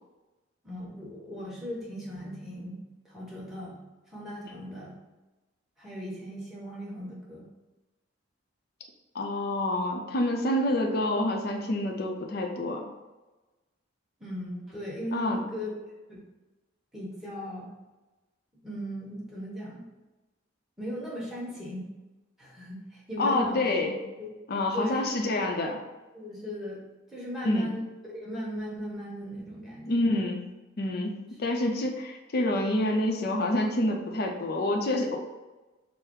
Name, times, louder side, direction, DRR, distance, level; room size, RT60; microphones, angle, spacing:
voice 1, 0.6-3.8 4.1-4.9 5.8-7.5 14.2-16.2 16.9-17.7 18.6-19.8 20.8-21.9 22.4-23.8 24.2-24.3 24.7-25.0 26.1-30.0, equal, ahead, -7 dB, 1.1 m, -37 dB
voice 2, 9.1-12.9 15.1-15.4 23.2-24.0 24.5-25.8 27.4-27.7 29.9-30.5 30.8-35.2, left 1 dB, 50° left, 2 dB, 0.5 m, -27 dB
4.7 x 2.0 x 4.5 m, 1.1 s
head